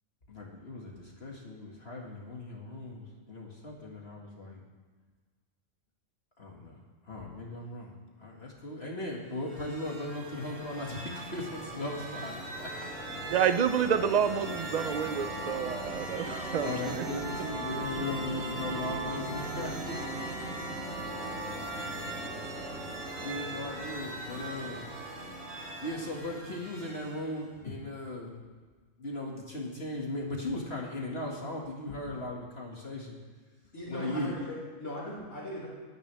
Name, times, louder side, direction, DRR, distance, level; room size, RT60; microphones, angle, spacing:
voice 1, 0.3-4.6 6.4-12.7 15.9-20.2 22.5-22.9 23.2-24.9 25.8-28.4 29.0-33.2 33.9-34.4, left 1 dB, 45° left, -2 dB, 2.3 m, -38 dB
sound 1, 9.3-27.5, right 2 dB, 80° right, 5.1 m, -38 dB
voice 2, 13.3-16.7 17.0-17.1, right 8 dB, 45° right, 11 dB, 0.5 m, -28 dB
voice 3, 33.7-35.7, left 1 dB, 60° left, -11 dB, 4.6 m, -39 dB
25.5 x 10.0 x 3.5 m, 1.4 s
omnidirectional pair, 1.4 m